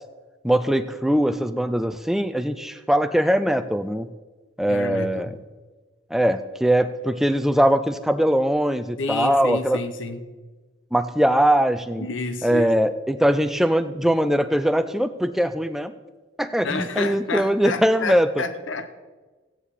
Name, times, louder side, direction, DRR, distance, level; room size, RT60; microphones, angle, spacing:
voice 1, 0.4-4.1 4.6-5.3 6.1-9.8 10.9-12.0 12.4-15.9 16.4-18.4, equal, ahead, 0.4 m, -21 dB
voice 2, 4.7-5.4 9.0-10.2 12.0-12.8 16.6-18.9, left 3 dB, 85° left, 0.9 m, -30 dB
15.0 x 9.9 x 4.1 m
head